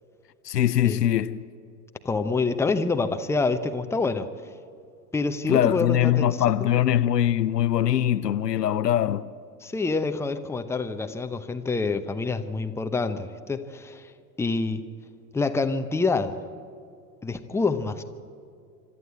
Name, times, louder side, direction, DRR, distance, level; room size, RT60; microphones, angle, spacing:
voice 1, 0.4-1.4 5.5-9.3, left 11 dB, 80° left, 0.7 m, -22 dB
voice 2, 2.0-4.3 5.1-6.2 6.6-6.7 9.6-14.1 14.4-14.8 15.3-16.4 17.2-18.0, left 3 dB, 5° left, 0.8 m, -26 dB
26.0 x 12.5 x 8.2 m
figure-of-eight pair, 85°, 48 cm